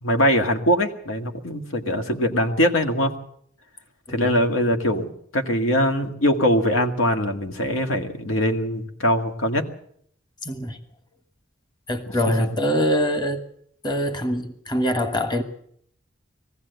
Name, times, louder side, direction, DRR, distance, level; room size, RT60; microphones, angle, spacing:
voice 1, 0.0-3.1 4.1-9.6 12.4-12.5, equal, 80° left, 2.0 m, -22 dB
voice 2, 10.4-10.8 11.9-13.4 13.8-15.4, equal, 20° left, 1.4 m, -24 dB
21.0 x 15.5 x 8.2 m
head